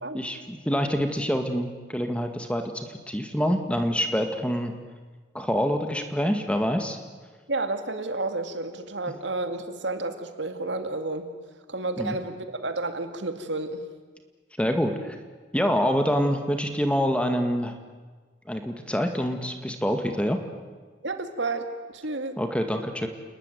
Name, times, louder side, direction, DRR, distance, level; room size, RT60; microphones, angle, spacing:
voice 1, 0.1-4.7 5.3-7.0 12.0-12.2 14.6-15.2 15.5-17.8 18.5-20.4 22.4-23.1, equal, 5° left, 5 dB, 1.9 m, -26 dB
voice 2, 7.5-11.3 11.7-13.9 21.0-22.4, right 2 dB, 75° right, 7 dB, 2.4 m, -31 dB
29.5 x 20.5 x 9.3 m, 1.4 s
head